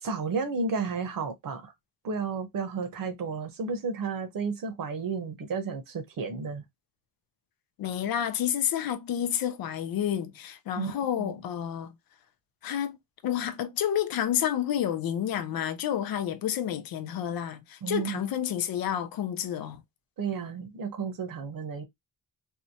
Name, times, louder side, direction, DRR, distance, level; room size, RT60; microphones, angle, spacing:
voice 1, 0.0-1.7 2.0-6.6 10.8-10.9 11.2-11.4 17.8-18.2 20.2-21.8, right 5 dB, 70° right, 0.9 m, -32 dB
voice 2, 7.8-11.9 12.6-13.0 13.2-19.8, left 10 dB, 85° left, 0.5 m, -30 dB
2.8 x 2.0 x 2.7 m
cardioid pair, 85°, 34 cm